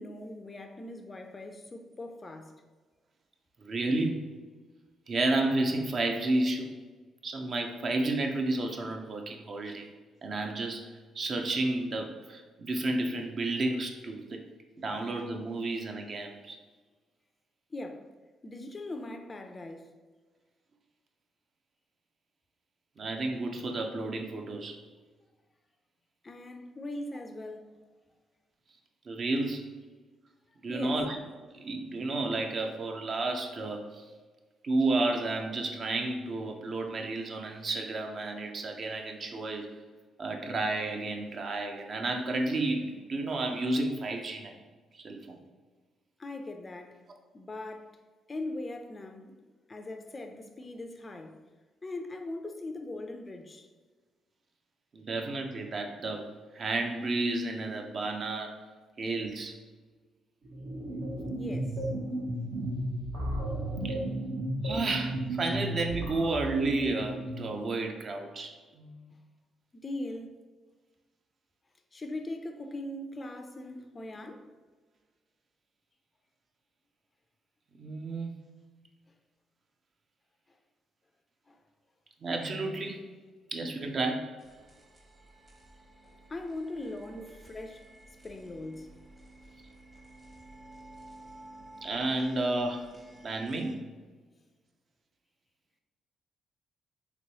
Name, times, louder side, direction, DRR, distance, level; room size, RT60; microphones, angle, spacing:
voice 1, 0.0-2.5 17.7-18.1 18.4-19.9 26.2-27.7 30.7-31.0 46.2-47.0 47.3-48.0 48.3-49.4 49.7-51.4 51.8-53.7 55.1-55.2 61.3-61.7 69.7-70.3 71.9-74.5 81.5-81.6 86.3-87.9 88.2-88.9, left 2 dB, 30° left, 0.3 m, -40 dB
voice 2, 3.6-4.2 5.1-6.7 7.2-9.9 10.2-10.9 11.1-14.4 14.8-16.6 23.0-24.8 29.1-29.6 30.6-31.2 31.5-34.0 34.6-39.7 40.2-44.5 44.9-45.4 54.9-56.3 56.5-58.5 59.0-59.6 63.8-64.0 64.6-69.1 77.8-78.4 82.2-83.0 83.5-84.3 91.8-92.9 93.2-93.8, right 2 dB, 50° right, 0.4 m, -31 dB
sound 1, 60.4-67.6, right 1 dB, 75° right, 0.8 m, -34 dB
sound 2, 84.4-93.7, right 2 dB, 20° right, 0.8 m, -53 dB
3.0 x 3.0 x 2.8 m
cardioid pair, 90°, 0 cm